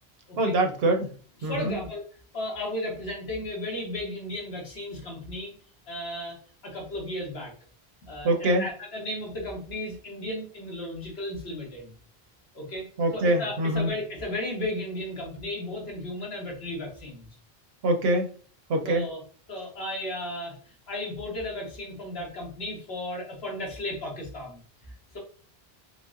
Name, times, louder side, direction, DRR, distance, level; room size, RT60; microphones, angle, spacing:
voice 1, 0.4-1.1 1.4-1.8 8.2-8.7 13.0-13.9 17.8-18.3 18.7-19.1, right 1 dB, 75° right, 5 dB, 0.9 m, -24 dB
voice 2, 1.4-2.0 2.3-5.5 5.9-6.4 6.6-7.5 8.1-11.9 12.5-17.3 18.7-19.2 19.5-20.6 20.9-24.6, left 1 dB, 80° left, -2 dB, 1.5 m, -34 dB
5.0 x 2.1 x 2.4 m, 0.41 s
omnidirectional pair, 1.0 m